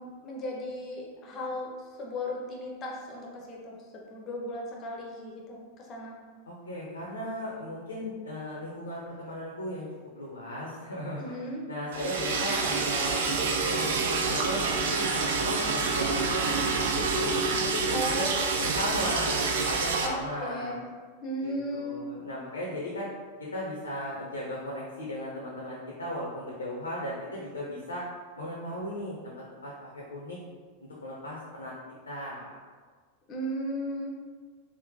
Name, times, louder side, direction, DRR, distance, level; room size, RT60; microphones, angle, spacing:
voice 1, 0.0-6.1 11.2-11.6 17.9-18.6 20.0-20.8 21.2-22.0 33.3-34.1, equal, 30° left, -1 dB, 0.6 m, -36 dB
voice 2, 6.4-9.9 10.1-11.4 11.7-17.3 17.6-20.8 21.4-23.1 23.4-28.1 28.4-29.3 29.6-30.4 31.0-31.7 32.1-32.5, left 1 dB, 75° left, -4 dB, 0.5 m, -36 dB
Liquid, 11.9-20.1, right 4 dB, 55° right, 0.3 m, -27 dB
3.6 x 2.0 x 2.7 m, 1.5 s
figure-of-eight pair, 90°, 0 cm